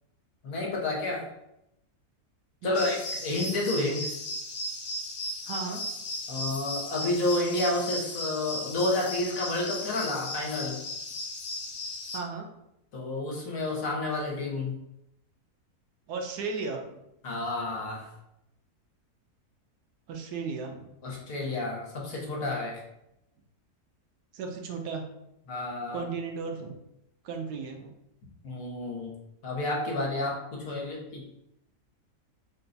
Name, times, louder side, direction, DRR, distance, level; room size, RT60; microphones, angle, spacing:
voice 1, 0.4-1.2 2.6-4.1 6.3-10.8 12.9-14.8 17.2-18.1 21.0-22.8 25.5-26.0 28.4-29.1 29.4-31.2, left 2 dB, 65° left, -2 dB, 1.3 m, -30 dB
sound 1, 2.7-12.2, left 1 dB, 85° left, 1.3 m, -36 dB
voice 2, 5.5-5.8 12.1-12.5 16.1-17.0 20.1-20.9 24.3-25.0 25.9-26.7 27.2-27.9, right 4 dB, 90° right, 3 dB, 1.2 m, -35 dB
4.2 x 2.2 x 3.9 m, 0.84 s
omnidirectional pair, 1.7 m